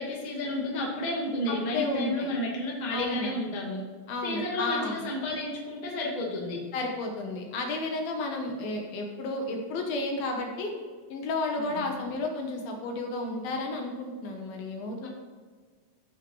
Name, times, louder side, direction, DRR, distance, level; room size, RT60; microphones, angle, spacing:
voice 1, 0.0-3.8 4.2-6.6 11.6-11.9 15.0-15.1, left 1 dB, 20° left, -3 dB, 1.1 m, -31 dB
voice 2, 1.7-2.3 2.9-3.3 4.1-5.0 6.7-10.7 11.1-15.1, left 2 dB, 70° left, 2 dB, 3.0 m, -32 dB
15.0 x 5.8 x 4.9 m, 1.5 s
omnidirectional pair, 4.7 m